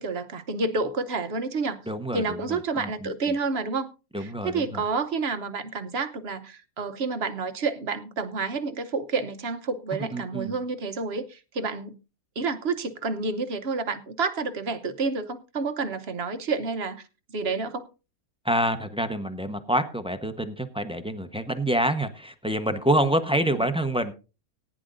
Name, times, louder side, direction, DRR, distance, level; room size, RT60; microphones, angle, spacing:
voice 1, 0.0-1.8 2.1-3.9 4.2-12.0 12.4-17.0 17.3-17.9 23.5-23.6, right 4 dB, 50° right, 0.9 m, -29 dB
voice 2, 1.9-3.1 4.1-4.8 9.9-10.5 18.4-24.1, right 1 dB, 5° right, 0.5 m, -27 dB
19.0 x 10.0 x 2.5 m
omnidirectional pair, 1.7 m